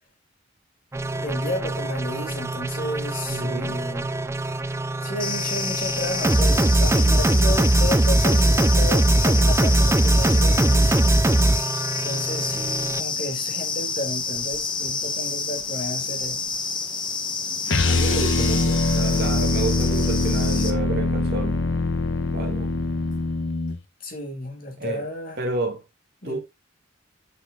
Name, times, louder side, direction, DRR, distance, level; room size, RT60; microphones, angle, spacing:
sound 1, 0.9-13.0, right 2 dB, 15° right, 0.3 m, -21 dB
voice 1, 1.2-4.1 5.0-11.0 12.0-16.4 24.0-25.4 26.2-26.4, left 1 dB, 45° left, 2.4 m, -32 dB
voice 2, 3.3-3.7 17.8-21.6 22.3-22.7 24.8-25.1 25.4-25.8 26.2-26.4, right 2 dB, 50° right, 1.7 m, -30 dB
sound 2, 5.2-20.7, left 5 dB, 25° left, 1.0 m, -29 dB
sound 3, 17.7-23.8, left 2 dB, 65° left, 0.9 m, -23 dB
8.8 x 4.4 x 3.9 m
head